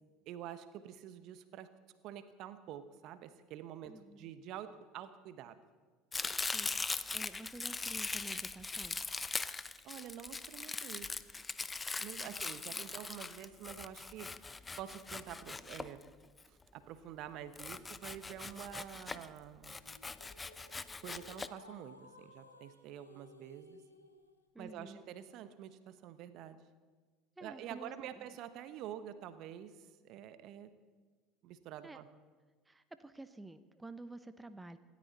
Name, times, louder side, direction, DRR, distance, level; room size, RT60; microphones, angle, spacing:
voice 1, 0.3-1.7 2.0-5.6 9.8-11.1 12.0-14.3 14.8-16.0 16.5-19.8 21.0-23.8 24.6-26.6 27.4-30.7 31.4-32.1, right 10 dB, 50° right, 12 dB, 1.1 m, -48 dB
voice 2, 3.8-4.3 6.5-9.0 12.2-12.4 12.7-12.8 24.5-25.0 27.4-28.3 31.8-32.0 32.7-34.8, right 2 dB, 10° right, 12 dB, 0.9 m, -51 dB
Domestic sounds home sounds, 6.1-16.4 17.5-19.3 19.6-21.5, left 3 dB, 20° left, 0.7 m, -41 dB
sound 1, 19.8-24.4, left 2 dB, 90° left, 1.3 m, -58 dB
27.0 x 13.0 x 4.2 m, 1.4 s
figure-of-eight pair, 70°, 0 cm